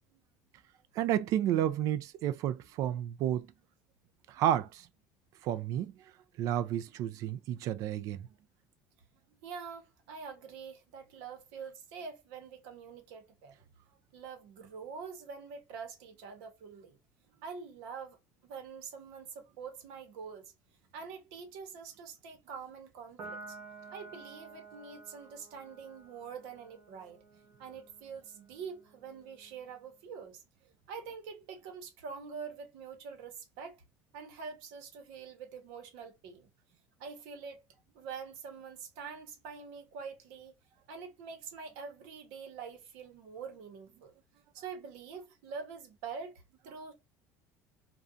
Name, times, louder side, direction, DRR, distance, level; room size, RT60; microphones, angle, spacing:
voice 1, 1.0-3.5 4.3-4.8 5.4-5.9 6.4-8.3, right 11 dB, 55° right, 0.4 m, -31 dB
voice 2, 9.4-13.6 14.1-17.0 17.4-18.2 18.4-20.5 20.9-23.6 23.9-27.2 27.6-30.4 30.9-33.7 34.1-36.5 37.0-37.6 37.9-40.5 40.9-44.1 44.5-46.3 46.6-46.9, right 5 dB, 85° right, 0.9 m, -45 dB
Piano, 23.2-29.9, right 3 dB, 35° right, 0.9 m, -52 dB
2.5 x 2.2 x 2.4 m
cardioid pair, 145°, 7 cm